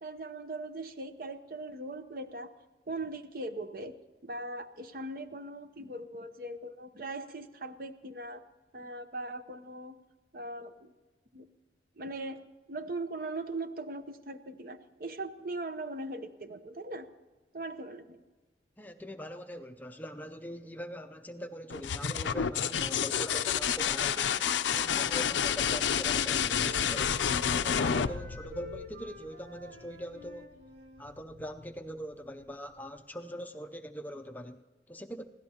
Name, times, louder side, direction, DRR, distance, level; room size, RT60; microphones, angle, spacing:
voice 1, 0.0-2.6 2.9-4.0 4.2-8.4 8.7-10.0 10.3-10.9 11.3-11.5 12.0-17.1 17.5-18.2, right 2 dB, 50° right, 9 dB, 0.7 m, -40 dB
voice 2, 18.8-24.4 24.7-27.1 27.5-30.5 31.0-35.2, equal, 10° left, 6 dB, 0.5 m, -42 dB
sound 1, 21.7-29.3 31.1-31.6, left 8 dB, 85° left, 0.5 m, -29 dB
Wind instrument woodwind instrument, 24.6-27.5 27.7-31.0, left 1 dB, 85° right, 2.0 m, -48 dB
23.5 x 16.5 x 2.8 m, 1.3 s
head